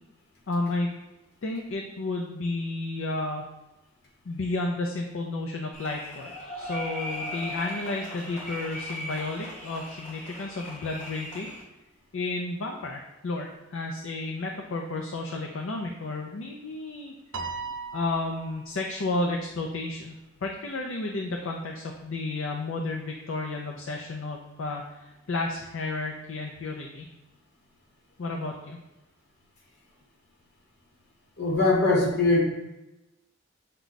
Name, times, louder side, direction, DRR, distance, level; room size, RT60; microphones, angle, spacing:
voice 1, 0.5-0.9 1.4-3.5 4.3-11.5 12.1-17.1 17.9-20.1 20.4-27.1 28.2-28.8, left 2 dB, 70° left, 1 dB, 0.5 m, -32 dB
sound 1, 5.7-11.6, left 1 dB, 35° left, 1.1 m, -38 dB
Piano, 17.3-18.9, right 4 dB, 85° right, 0.5 m, -37 dB
voice 2, 31.4-32.4, left 2 dB, 55° left, -2 dB, 1.2 m, -21 dB
6.0 x 2.2 x 3.9 m, 0.99 s
head